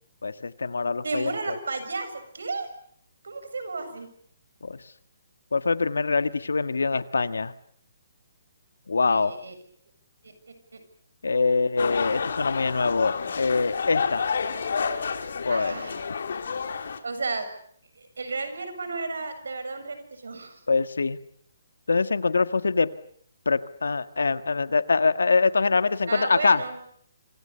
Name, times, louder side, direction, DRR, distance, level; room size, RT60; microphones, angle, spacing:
voice 1, 0.2-1.5 4.6-4.8 5.5-7.5 8.9-9.3 11.2-14.3 15.4-15.7 20.7-21.2 21.9-22.9 23.4-26.6, left 4 dB, 90° left, 12 dB, 1.6 m, -24 dB
voice 2, 1.0-2.7 3.2-4.1 9.1-9.5 10.2-10.8 15.5-16.0 16.6-17.5 18.0-20.6 26.1-26.8, right 3 dB, 85° right, 10 dB, 7.1 m, -33 dB
sound 1, 11.8-17.0, left 5 dB, 70° left, 3.4 m, -30 dB
27.0 x 26.0 x 6.9 m, 0.64 s
hypercardioid pair, 155°, 0 cm